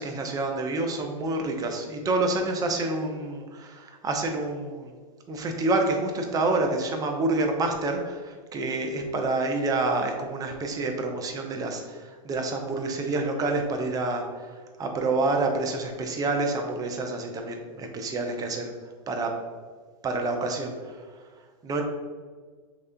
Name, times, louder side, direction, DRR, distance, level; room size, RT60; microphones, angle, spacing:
voice 1, 0.0-4.9 5.3-14.5 14.8-18.7 19.1-19.3 20.0-21.0 21.6-21.8, right 2 dB, 20° right, 3 dB, 0.6 m, -28 dB
3.2 x 2.9 x 3.7 m, 1.5 s
hypercardioid pair, 125°, 18 cm